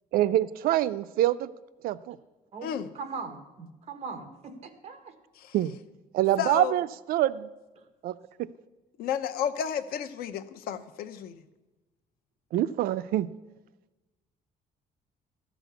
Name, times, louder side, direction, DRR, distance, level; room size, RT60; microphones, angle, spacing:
voice 1, 0.1-1.5 1.8-2.2 5.5-5.8 6.1-7.5 8.0-8.5 12.5-13.3, right 13 dB, 75° right, 15 dB, 0.4 m, -25 dB
voice 2, 2.5-5.1 7.8-7.9, right 4 dB, 45° right, 7 dB, 1.4 m, -40 dB
voice 3, 6.4-6.7 9.0-11.4, left 9 dB, 90° left, 10 dB, 0.8 m, -32 dB
13.5 x 6.1 x 8.0 m, 1.1 s
cardioid pair, 160°, 15 cm